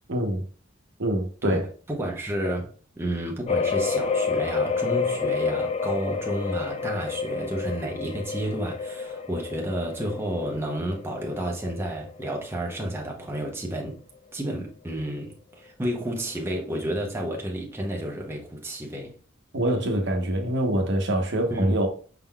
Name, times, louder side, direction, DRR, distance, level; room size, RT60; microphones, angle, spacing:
voice 1, 0.1-0.4 1.0-1.7 19.5-21.9, right 1 dB, 60° right, 0.9 m, -25 dB
voice 2, 1.4-14.0 14.3-19.2 21.5-21.7, right 1 dB, 10° right, 0.7 m, -31 dB
sound 1, 3.5-13.0 13.4-13.5 13.9-14.0, left 5 dB, 30° left, 0.3 m, -29 dB
5.8 x 3.7 x 2.2 m
head